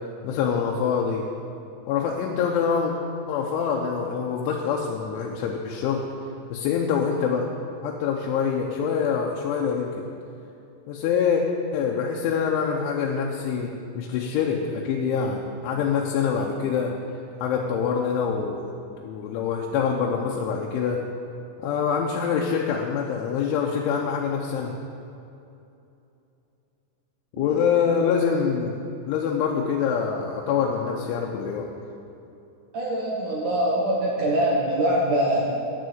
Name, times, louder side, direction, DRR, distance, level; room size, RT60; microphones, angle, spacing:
voice 1, 0.2-1.3 1.9-2.9 3.3-6.1 6.5-7.5 7.8-10.1 10.9-11.4 11.7-16.9 17.4-21.0 21.6-24.7 27.3-28.8 29.1-31.7, left 6 dB, 90° left, -1 dB, 3.2 m, -25 dB
voice 2, 32.7-35.4, right 1 dB, 70° right, -4 dB, 1.9 m, -23 dB
10.5 x 6.3 x 8.6 m, 2.8 s
omnidirectional pair, 5.3 m